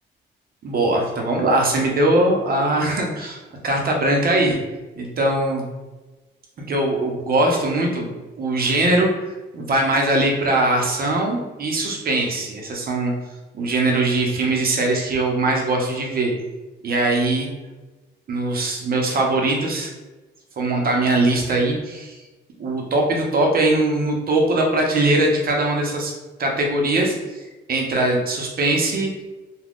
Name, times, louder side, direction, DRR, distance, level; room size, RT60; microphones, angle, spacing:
voice 1, 0.6-3.4 3.6-4.6 5.0-5.6 6.7-8.1 8.4-9.1 9.5-13.1 13.5-16.3 16.8-17.5 18.3-19.9 20.6-22.2 22.6-26.1 26.4-29.1, right 2 dB, 50° right, 0 dB, 0.8 m, -21 dB
2.4 x 2.3 x 3.5 m, 1.2 s
cardioid pair, 90°, 20 cm